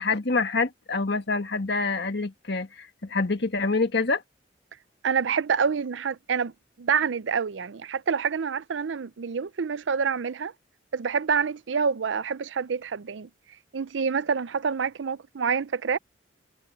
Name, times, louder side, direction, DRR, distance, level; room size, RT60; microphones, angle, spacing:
voice 1, 0.0-4.2, left 3 dB, 60° left, 1.7 m, -26 dB
voice 2, 5.0-6.5 6.8-10.5 10.9-13.3 13.7-16.0, right 6 dB, 80° right, 0.5 m, -27 dB
head